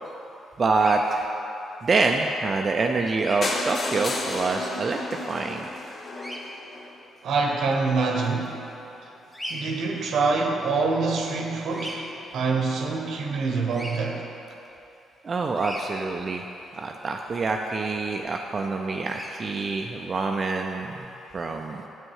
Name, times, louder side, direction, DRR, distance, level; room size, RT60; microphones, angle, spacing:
voice 1, 0.6-1.3 1.8-5.0 5.3-5.7 15.2-16.5 16.8-21.1 21.3-21.9, right 3 dB, 40° right, 2 dB, 0.4 m, -26 dB
Bird vocalization bird call bird song, 0.7-1.0 3.2-3.4 6.2-6.4 9.3-9.6 11.7-12.0 13.7-14.0 15.6-15.8 19.0-19.3, equal, 10° left, 1.1 m, -36 dB
sound 1, 3.4-7.3 7.9-8.0 8.3-8.4 8.7-8.8 8.9-9.0, left 2 dB, 45° left, 0.8 m, -32 dB
voice 2, 7.2-8.6 9.5-14.3, right 4 dB, 70° right, 2 dB, 0.9 m, -25 dB
7.5 x 6.2 x 4.7 m, 2.9 s
cardioid pair, 90°, 0 cm